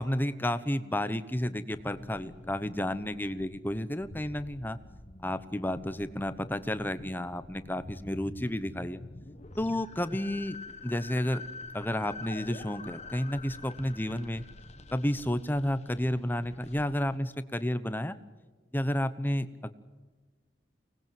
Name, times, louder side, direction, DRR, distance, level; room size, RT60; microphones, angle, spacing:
voice 1, 0.0-4.8 5.2-9.0 9.6-10.6 10.8-11.4 11.7-14.4 14.9-18.2 18.7-19.7, left 1 dB, 10° left, 13 dB, 1.0 m, -31 dB
sound 1, 1.7-17.2, left 2 dB, 40° left, 1.4 m, -47 dB
24.5 x 19.5 x 9.1 m, 1.3 s
head